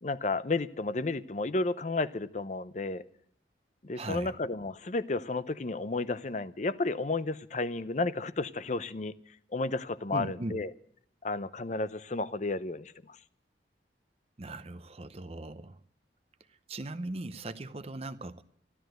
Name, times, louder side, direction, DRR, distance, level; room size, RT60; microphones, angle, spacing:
voice 1, 0.0-3.0 3.8-9.1 9.5-10.7 11.2-13.2, left 3 dB, 40° left, 15 dB, 0.6 m, -32 dB
voice 2, 3.9-4.3 10.1-10.6 14.4-15.8 16.7-18.4, right 2 dB, 35° right, 12 dB, 0.7 m, -38 dB
14.5 x 12.5 x 7.8 m, 0.68 s
head